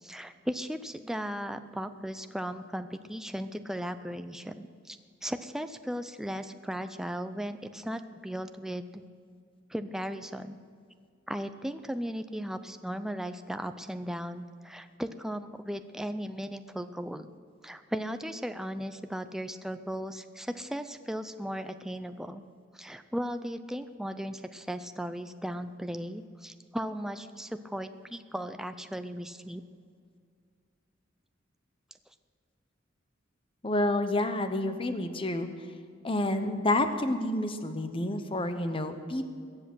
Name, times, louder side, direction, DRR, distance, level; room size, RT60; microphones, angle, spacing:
voice 1, 0.0-9.0 9.7-10.6 11.3-17.3 17.6-22.4 22.7-29.6, equal, 5° right, 9 dB, 0.5 m, -36 dB
voice 2, 33.6-35.5 36.0-39.3, left 1 dB, 30° left, 9 dB, 0.9 m, -29 dB
22.0 x 8.0 x 6.2 m, 2.2 s
head